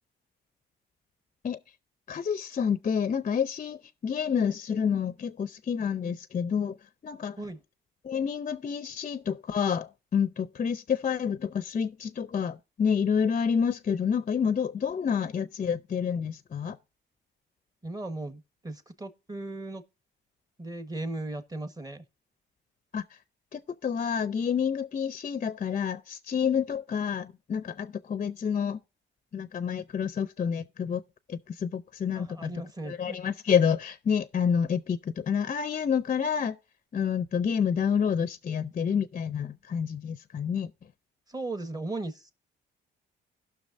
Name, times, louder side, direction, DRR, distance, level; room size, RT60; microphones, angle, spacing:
voice 1, 2.1-6.8 7.0-7.4 8.0-16.8 22.9-23.0 23.5-28.8 29.3-31.0 31.3-32.5 32.9-36.6 36.9-40.7, left 7 dB, 40° left, 0.6 m, -28 dB
voice 2, 17.8-19.8 20.6-22.0 32.1-33.2 41.3-42.3, right 2 dB, 20° right, 1.5 m, -37 dB
17.0 x 6.0 x 2.6 m
cardioid pair, 90°, 20 cm